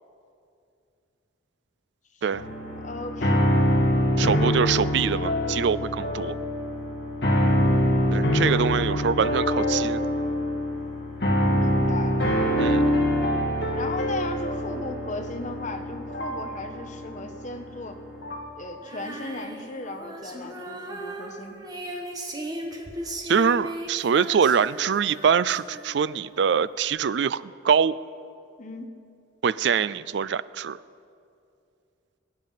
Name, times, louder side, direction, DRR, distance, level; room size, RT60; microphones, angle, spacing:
sound 1, 2.3-18.6, equal, 55° left, 1.8 m, -25 dB
voice 1, 2.8-3.6 7.2-7.4 11.5-12.2 13.7-18.0 18.6-21.6 28.6-28.9, left 2 dB, 40° left, 5 dB, 1.2 m, -36 dB
voice 2, 4.2-6.4 8.1-10.0 12.6-12.8 23.2-28.0 29.4-30.8, right 6 dB, 60° right, 18 dB, 0.4 m, -24 dB
Female singing, 18.8-26.3, right 1 dB, 20° right, 1.3 m, -37 dB
21.5 x 9.5 x 5.7 m, 2.5 s
head